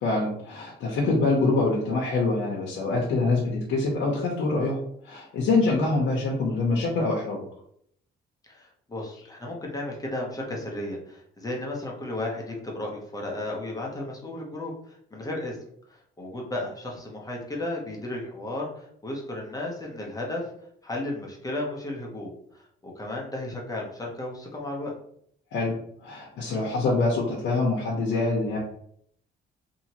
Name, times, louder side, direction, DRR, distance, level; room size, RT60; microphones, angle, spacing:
voice 1, 0.0-4.8 5.0-7.4 25.5-25.8 26.0-28.6, left 3 dB, 75° left, -3 dB, 0.7 m, -25 dB
voice 2, 8.4-15.6 15.9-20.4 20.8-24.9, left 1 dB, 20° left, -2 dB, 0.8 m, -34 dB
2.8 x 2.8 x 2.8 m, 0.67 s
cardioid pair, 90°, 20 cm